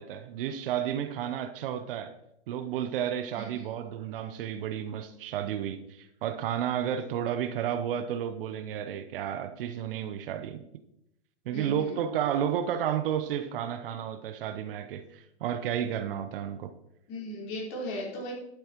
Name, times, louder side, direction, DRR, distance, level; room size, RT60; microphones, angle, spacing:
voice 1, 0.0-2.1 2.5-10.6 11.5-16.7, right 9 dB, 50° right, 0.8 m, -32 dB
voice 2, 11.5-12.0 17.1-18.3, equal, 45° left, 4.4 m, -37 dB
12.0 x 8.7 x 3.0 m
hypercardioid pair, 115°, 35 cm